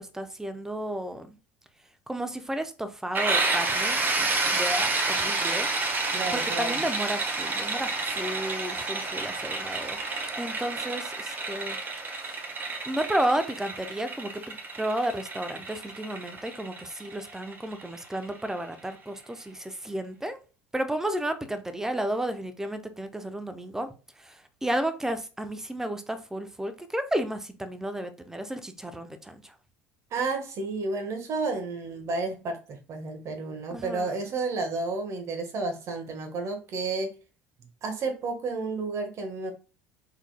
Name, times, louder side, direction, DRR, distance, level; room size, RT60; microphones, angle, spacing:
voice 1, 0.0-1.4 2.1-5.7 6.3-10.0 10.4-11.8 12.2-12.4 12.9-20.4 20.7-23.9 24.2-24.4 24.6-29.5 33.7-34.1, right 1 dB, 5° right, 0.7 m, -32 dB
sound 1, 3.1-18.7, right 3 dB, 30° right, 1.2 m, -30 dB
voice 2, 6.1-6.8 30.1-37.1 37.8-39.5, right 3 dB, 45° right, 1.3 m, -31 dB
4.5 x 4.0 x 2.2 m
figure-of-eight pair, 65°, 7 cm